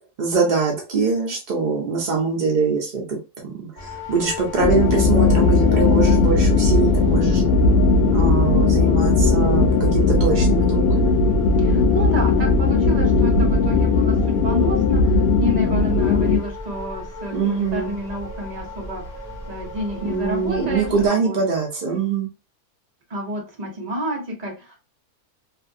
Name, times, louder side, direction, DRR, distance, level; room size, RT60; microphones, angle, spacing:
voice 1, 0.2-3.2 3.6-7.4 8.1-11.2 17.3-18.0 20.0-22.3, right 4 dB, 75° right, 0 dB, 0.4 m, -23 dB
sound 1, 3.8-21.1, left 2 dB, 25° left, 1.0 m, -36 dB
sound 2, 4.6-16.4, left 3 dB, 80° left, 0.5 m, -17 dB
voice 2, 11.6-15.1 15.4-19.0 19.5-21.4 23.1-24.8, equal, 35° right, -1 dB, 0.7 m, -29 dB
2.6 x 2.4 x 2.6 m, 0.31 s
omnidirectional pair, 1.6 m